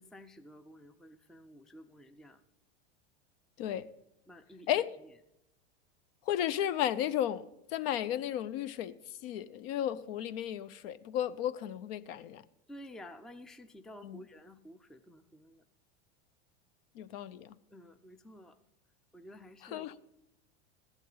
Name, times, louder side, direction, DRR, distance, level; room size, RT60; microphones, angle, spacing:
voice 1, 0.0-2.4 4.3-4.8 12.7-15.6 17.7-18.6 19.1-19.9, equal, ahead, 0.4 m, -52 dB
voice 2, 3.6-3.9 4.7-5.0 6.3-8.9 9.2-12.4 14.0-14.2 17.0-17.5 19.6-19.9, left 11 dB, 65° left, 0.7 m, -34 dB
15.0 x 10.5 x 3.9 m
supercardioid pair, 120°, 33 cm